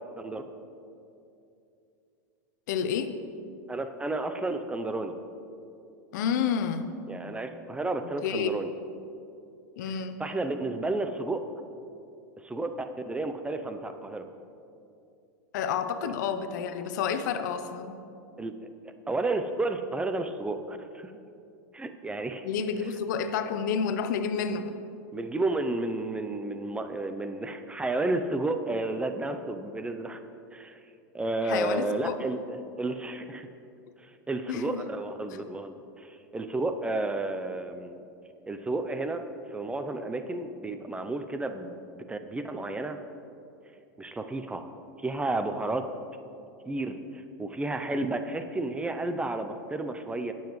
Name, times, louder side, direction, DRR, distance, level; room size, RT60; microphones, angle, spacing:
voice 1, 2.7-3.1 6.1-6.9 8.2-8.5 9.8-10.2 15.5-18.0 22.4-24.8 31.4-32.2 34.5-34.8, left 7 dB, 70° left, 10 dB, 0.7 m, -30 dB
voice 2, 3.7-5.1 7.1-8.7 9.8-9.9 10.2-11.4 12.4-14.3 16.0-16.1 18.4-18.5 19.1-21.1 21.7-22.5 25.1-30.2 30.5-30.8 31.1-33.5 34.0-38.0 38.5-39.2 39.5-43.0 44.0-44.7 45.0-45.9 46.7-50.3, right 2 dB, 10° right, 8 dB, 0.5 m, -32 dB
17.0 x 7.1 x 3.1 m, 2.6 s
hypercardioid pair, 110°, 10 cm